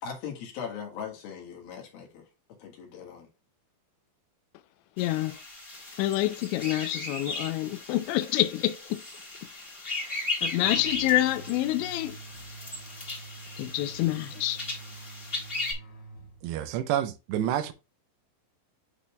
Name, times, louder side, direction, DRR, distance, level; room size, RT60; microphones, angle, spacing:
voice 1, 0.0-3.3, left 7 dB, 65° left, 3.1 m, -40 dB
voice 2, 5.0-5.4 6.0-9.0 10.0-12.2 13.6-14.6, left 15 dB, 85° left, 3.0 m, -27 dB
sound 1, 5.0-15.7, left 3 dB, 15° left, 2.1 m, -37 dB
sound 2, 10.6-16.8, right 3 dB, 35° left, 1.9 m, -46 dB
voice 3, 16.4-17.7, right 11 dB, 80° right, 2.6 m, -28 dB
11.5 x 4.1 x 2.3 m
omnidirectional pair, 5.2 m